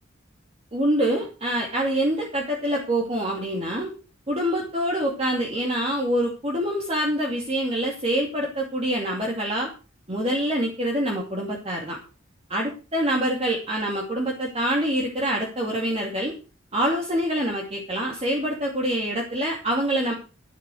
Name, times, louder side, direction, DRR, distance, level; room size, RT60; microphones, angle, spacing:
voice 1, 0.7-3.9 4.3-9.7 10.1-12.0 12.5-16.3 16.7-20.1, right 1 dB, 30° right, -1 dB, 2.7 m, -25 dB
13.5 x 7.8 x 6.3 m, 0.35 s
head